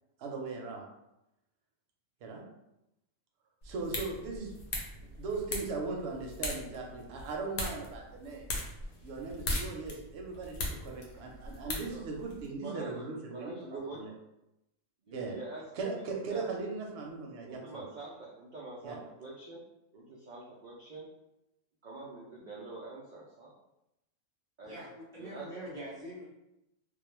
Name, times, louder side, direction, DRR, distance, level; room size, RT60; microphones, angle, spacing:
voice 1, 0.2-0.8 2.2-2.4 3.6-4.5 5.2-8.6 9.0-14.1 15.1-15.4 15.8-17.8 18.8-19.0, right 3 dB, 65° right, 0 dB, 0.8 m, -38 dB
sound 1, 3.6-12.5, left 2 dB, 60° left, 0.8 m, -40 dB
voice 2, 12.6-12.9 13.3-14.0 15.0-15.6 15.9-16.4 17.5-19.6 19.9-21.1 21.8-23.5 24.6-24.8 25.2-25.5, right 3 dB, 90° right, -4 dB, 0.4 m, -45 dB
voice 3, 24.7-26.3, equal, 5° left, -7 dB, 0.6 m, -44 dB
2.3 x 2.1 x 3.1 m, 0.89 s
omnidirectional pair, 1.3 m